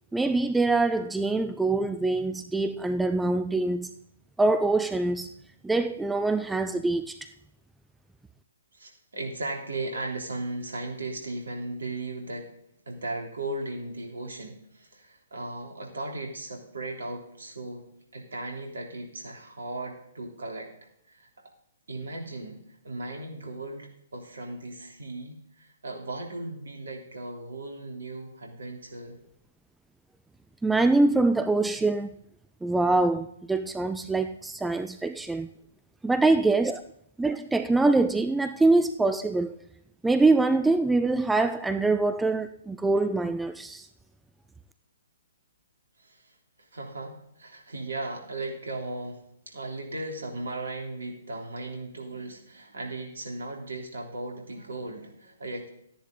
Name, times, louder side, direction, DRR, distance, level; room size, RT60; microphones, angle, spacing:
voice 1, 0.1-3.9 4.4-5.3 5.6-7.2 30.6-32.1 32.6-35.5 36.0-36.8 37.2-39.5 40.0-43.9, right 3 dB, 5° right, 0.4 m, -24 dB
voice 2, 8.7-12.5 12.8-20.7 21.1-21.2 21.9-22.6 22.8-29.2 46.0-46.2 46.7-55.7, right 2 dB, 65° right, 3.3 m, -37 dB
13.0 x 10.5 x 3.8 m
figure-of-eight pair, 125°, 0 cm